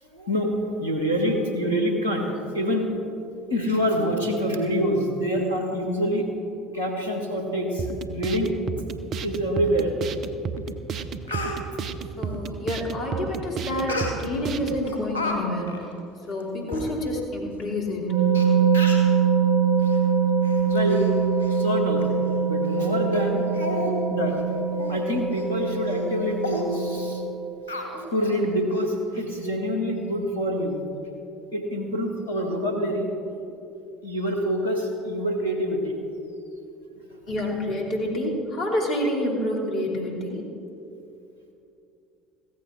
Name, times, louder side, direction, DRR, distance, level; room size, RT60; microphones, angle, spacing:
voice 1, 0.1-2.3 2.5-2.9 3.5-6.3 6.7-8.5 9.2-9.9 11.7-11.8 20.6-21.0 21.5-22.1 22.4-23.6 24.1-24.6 24.9-27.2 28.1-30.8 31.5-33.1 34.0-36.0 37.1-37.2, equal, 85° left, 1 dB, 1.9 m, -26 dB
sound 1, 7.8-14.8, right 6 dB, 45° right, 0.7 m, -32 dB
Speech, 10.6-10.7 11.0-11.6 13.9-14.4 14.8-15.4 15.7-15.8 16.4-16.5 16.7-16.8 17.6-17.7 18.3-18.4 18.7-19.1 19.8-20.0 20.4-21.1 21.4-21.6 22.0-22.1 22.6-22.8 23.1-23.2 23.5-23.9 24.3-24.4 24.8-25.0 25.3-25.5 25.9-26.0 26.4-26.6 27.7-28.3 28.7-28.8, left 1 dB, 90° right, 1.8 m, -32 dB
voice 2, 12.2-15.9 16.3-18.1 37.3-40.4, left 1 dB, 45° left, -1 dB, 3.0 m, -28 dB
sound 2, 18.1-27.2, right 5 dB, 60° right, 2.6 m, -23 dB
15.5 x 15.0 x 3.8 m, 2.7 s
figure-of-eight pair, 65°, 0 cm